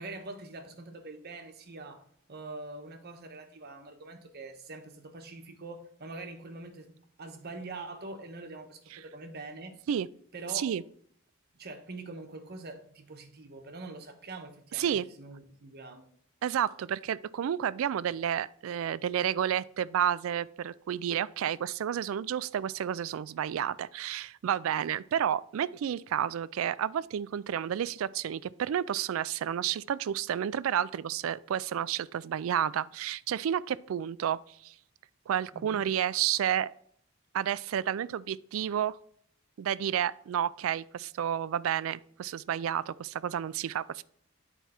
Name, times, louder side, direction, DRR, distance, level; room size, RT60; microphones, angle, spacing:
voice 1, 0.0-2.0 2.3-6.9 7.2-9.8 10.3-10.7 11.5-16.1 35.5-35.8, right 2 dB, 50° right, 1.1 m, -44 dB
voice 2, 14.7-15.1 16.4-34.7 35.3-36.7 37.3-39.0 39.6-44.0, right 9 dB, 75° right, 0.3 m, -31 dB
9.2 x 4.5 x 4.3 m
head